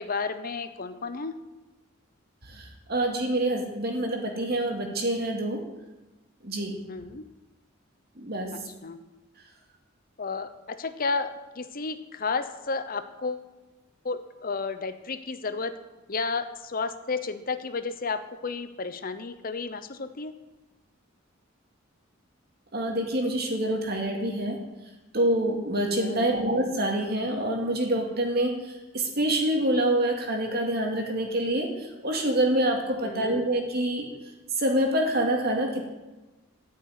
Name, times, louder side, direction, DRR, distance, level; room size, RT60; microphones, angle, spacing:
voice 1, 0.0-1.3 6.9-7.3 8.5-9.0 10.2-13.5 14.0-15.7 16.1-20.3 26.0-26.4 33.0-33.4, left 4 dB, 45° left, 11 dB, 0.8 m, -32 dB
voice 2, 2.4-5.6 6.4-6.8 8.2-8.6 22.7-24.6 25.1-34.1 34.6-35.9, right 1 dB, 50° right, 2 dB, 2.5 m, -26 dB
13.5 x 6.5 x 9.5 m, 1.1 s
head